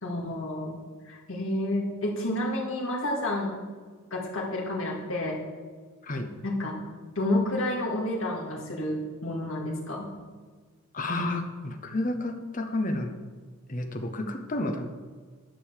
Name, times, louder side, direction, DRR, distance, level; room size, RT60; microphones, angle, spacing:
voice 1, 0.0-0.8 1.1-3.6 4.1-5.4 6.4-6.8 7.2-10.1, left 1 dB, 65° left, -2 dB, 2.1 m, -30 dB
voice 2, 10.9-13.1 13.7-14.9, left 2 dB, 35° left, 5 dB, 0.9 m, -30 dB
10.5 x 5.3 x 6.7 m, 1.5 s
head